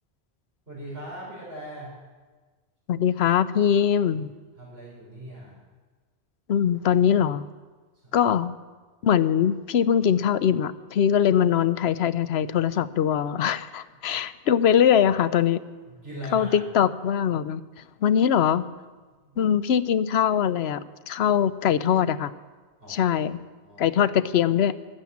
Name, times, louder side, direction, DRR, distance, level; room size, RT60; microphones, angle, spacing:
voice 1, 0.7-1.9 4.6-5.6 8.0-8.2 15.9-16.6 19.2-19.4 22.8-23.2 23.6-23.9, right 1 dB, 75° right, -6 dB, 5.5 m, -40 dB
voice 2, 2.9-4.3 6.5-7.4 8.1-8.5 9.0-15.6 16.3-17.6 18.0-18.6 19.4-22.3 22.9-23.4 23.8-24.7, left 9 dB, 80° left, 15 dB, 0.9 m, -22 dB
15.5 x 12.5 x 7.2 m, 1.4 s
omnidirectional pair, 1.1 m